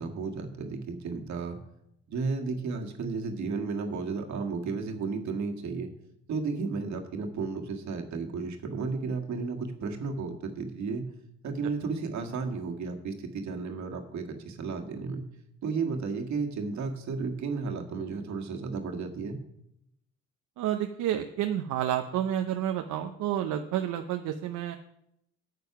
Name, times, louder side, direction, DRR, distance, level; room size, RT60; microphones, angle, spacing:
voice 1, 0.0-1.6 2.1-5.9 6.3-11.0 11.4-15.2 15.6-19.4, right 4 dB, 70° right, 4 dB, 1.7 m, -33 dB
voice 2, 20.6-24.8, right 11 dB, 85° right, 6 dB, 0.7 m, -30 dB
9.4 x 7.6 x 5.9 m, 0.81 s
cardioid pair, 90°, 30 cm